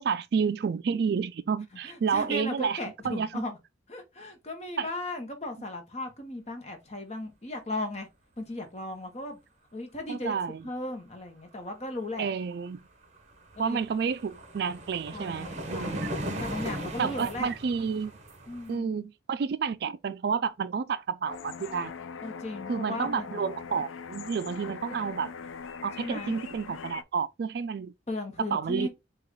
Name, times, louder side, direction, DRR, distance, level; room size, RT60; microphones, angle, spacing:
voice 1, 0.0-2.8 3.0-3.4 4.8-4.9 10.1-10.6 12.2-12.8 13.6-16.1 16.4-16.5 17.0-18.1 18.7-21.9 22.7-25.3 25.8-27.9 28.5-28.9, right 6 dB, 55° right, 0.3 m, -30 dB
voice 2, 1.8-3.6 3.9-8.1 8.4-9.4 9.7-10.3 10.6-12.3 13.5-13.8 15.1-17.5 18.5-19.1 22.2-23.5 26.0-26.4 28.1-28.9, left 2 dB, 35° left, 1.0 m, -36 dB
sound 1, 12.7-12.8 13.0-18.8, right 1 dB, 35° right, 0.8 m, -38 dB
sound 2, 21.2-27.0, left 6 dB, 90° left, 0.4 m, -41 dB
4.8 x 2.4 x 3.6 m
head